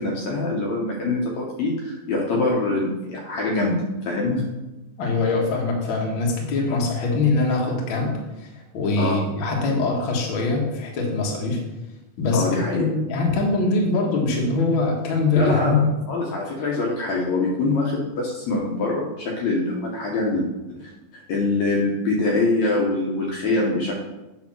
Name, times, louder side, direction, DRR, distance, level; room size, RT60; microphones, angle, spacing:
voice 1, 0.0-3.8 4.0-4.5 9.0-9.2 12.3-12.9 15.4-23.9, left 2 dB, 65° left, -3 dB, 2.0 m, -24 dB
voice 2, 5.0-8.5 8.7-11.6 12.2-15.9, left 3 dB, 50° left, -1 dB, 1.6 m, -23 dB
8.9 x 3.4 x 6.1 m, 1.0 s
omnidirectional pair, 3.9 m